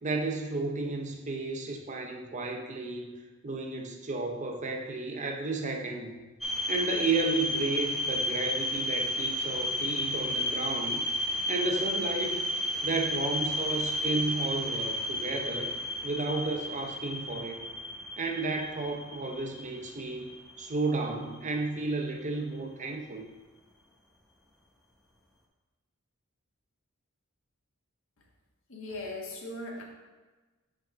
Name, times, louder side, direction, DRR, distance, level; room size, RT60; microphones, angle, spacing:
voice 1, 0.0-3.1 3.4-6.1 6.7-11.0 11.5-12.4 12.8-15.7 16.0-17.6 18.2-20.3 20.6-23.2, right 3 dB, 35° right, 2 dB, 0.7 m, -32 dB
sound 1, 6.4-21.3, left 1 dB, ahead, 0.8 m, -32 dB
voice 2, 28.7-29.8, left 2 dB, 65° left, -1 dB, 1.3 m, -39 dB
5.9 x 4.0 x 5.0 m, 1.2 s
head